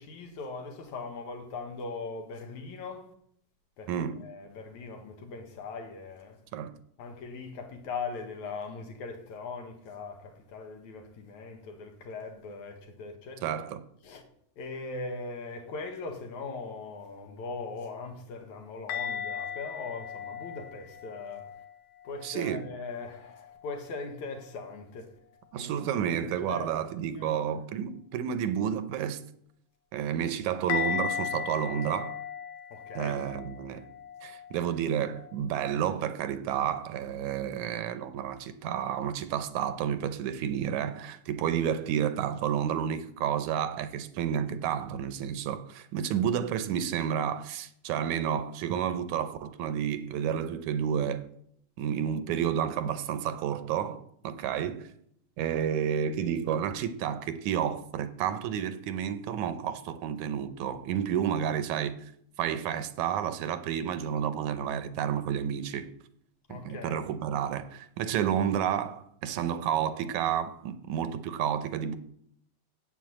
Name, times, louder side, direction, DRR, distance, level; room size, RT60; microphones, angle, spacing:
voice 1, 0.0-3.1 3.8-3.9 4.2-6.4 7.0-13.6 14.0-14.2 14.6-21.5 22.0-25.1 25.6-25.8 26.4-26.8 27.1-27.4 32.7-33.2 66.5-67.0, left 4 dB, 70° left, 3.1 m, -40 dB
voice 2, 3.9-4.2 6.5-6.8 13.4-13.8 22.2-22.7 25.5-29.2 29.9-32.2 32.9-33.9 34.2-51.3 51.8-54.9 55.4-62.0 62.4-65.9 66.5-72.0, right 9 dB, 80° right, 2.2 m, -30 dB
sound 1, 18.9-22.8 23.2-23.8 30.7-35.4, left 7 dB, 90° left, 2.6 m, -37 dB
9.4 x 8.5 x 7.8 m
omnidirectional pair, 3.5 m